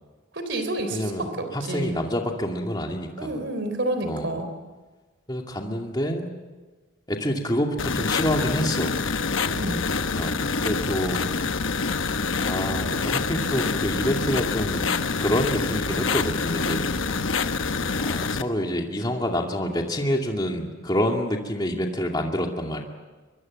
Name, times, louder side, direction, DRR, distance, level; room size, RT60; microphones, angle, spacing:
voice 1, 0.3-2.0 3.2-4.5 9.5-9.9, right 1 dB, 60° right, 7 dB, 3.7 m, -29 dB
voice 2, 0.9-1.3 1.5-3.4 4.0-4.3 5.3-6.3 7.1-8.9 10.1-11.3 12.4-14.8 15.2-16.9 18.0-22.8, equal, 20° left, 2 dB, 2.4 m, -27 dB
sound 1, 7.8-18.4, left 4 dB, 80° left, 1.0 m, -26 dB
23.5 x 23.5 x 7.7 m, 1.3 s
head